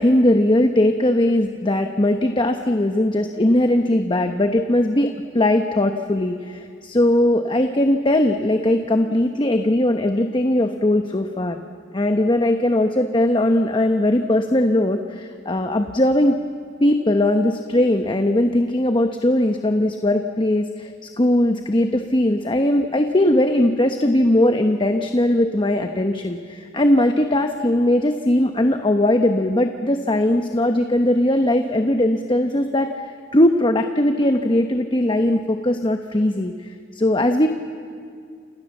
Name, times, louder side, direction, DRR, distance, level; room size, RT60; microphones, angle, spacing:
voice 1, 0.0-11.6 11.9-16.4 16.8-37.5, left 1 dB, 25° left, 6 dB, 1.0 m, -19 dB
28.5 x 27.5 x 7.2 m, 2.2 s
head